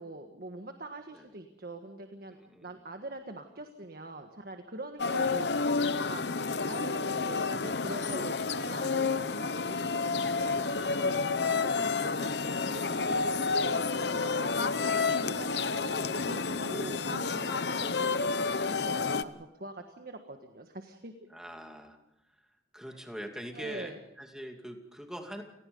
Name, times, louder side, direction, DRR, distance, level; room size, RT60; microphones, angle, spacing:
voice 1, 0.0-21.1 23.5-24.0, right 2 dB, 60° right, 5 dB, 1.6 m, -44 dB
voice 2, 2.3-2.8 5.1-5.2 10.7-11.1 13.4-14.2 17.3-18.0 21.3-22.0 22.3-22.5 22.7-25.4, equal, 5° right, 3 dB, 2.6 m, -44 dB
sound 1, 5.0-19.2, left 4 dB, 70° left, 0.9 m, -30 dB
29.5 x 19.5 x 5.5 m, 0.85 s
head